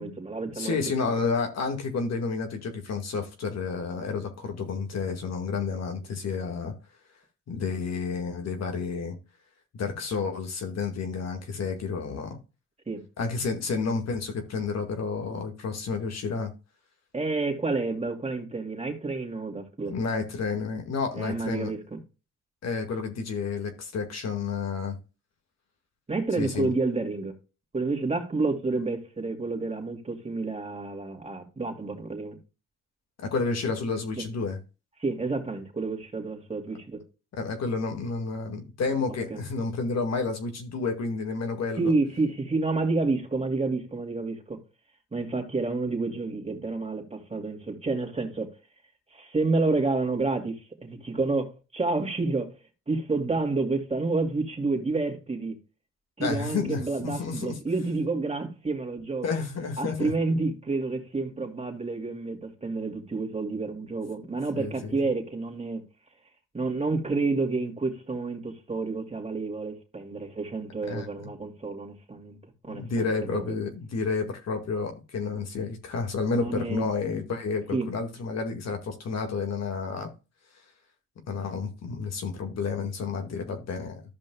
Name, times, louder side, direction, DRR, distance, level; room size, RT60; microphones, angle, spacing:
voice 1, 0.0-0.8 1.0-1.1 12.9-13.0 17.1-19.9 21.2-22.0 26.1-27.3 27.7-32.4 34.2-34.3 35.0-37.0 39.3-39.4 41.8-44.6 45.1-48.5 49.1-52.5 52.9-55.5 56.2-59.3 59.8-65.8 66.5-72.4 72.6-73.6 76.3-76.8 77.7-77.9, right 3 dB, 20° right, 2.6 m, -29 dB
voice 2, 0.6-6.7 7.5-9.2 9.7-12.4 13.2-16.5 19.9-21.7 22.6-25.0 26.4-26.7 33.2-34.6 37.3-41.9 56.2-57.6 59.2-60.1 64.5-65.0 70.8-71.3 72.7-80.1 81.3-84.0, left 4 dB, 60° left, 2.0 m, -30 dB
14.0 x 5.3 x 2.3 m
cardioid pair, 90°, 30 cm